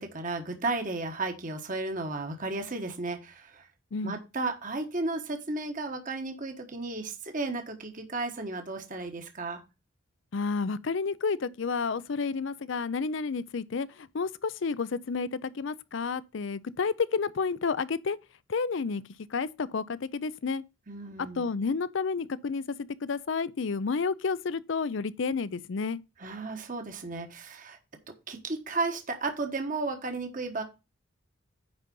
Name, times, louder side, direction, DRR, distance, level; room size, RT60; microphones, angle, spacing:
voice 1, 0.0-3.7 4.0-9.6 20.9-21.5 26.2-27.8 28.3-30.6, right 3 dB, 40° right, 1.2 m, -34 dB
voice 2, 10.3-18.2 18.5-19.0 19.3-20.6 21.2-26.0, left 5 dB, 60° left, 0.5 m, -30 dB
9.7 x 4.0 x 5.3 m
head